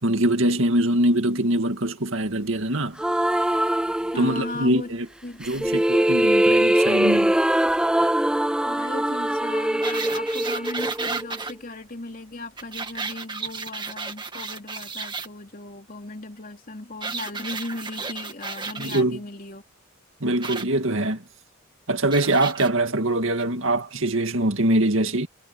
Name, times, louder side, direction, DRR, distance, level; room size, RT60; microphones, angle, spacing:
voice 1, 0.0-3.0 4.2-5.1 5.4-7.3 18.8-19.2 20.2-21.2 21.9-25.3, right 1 dB, 60° right, 2.2 m, -23 dB
sound 1, 3.0-4.7 5.4-11.5, right 1 dB, 5° right, 0.4 m, -22 dB
voice 2, 3.8-4.9 5.2-5.9 8.6-19.6, left 2 dB, 40° left, 3.1 m, -37 dB
sound 2, 9.8-11.5 12.6-15.3 17.0-19.0 20.4-20.6 22.1-22.7 23.4-23.5, right 4 dB, 20° right, 1.9 m, -33 dB
head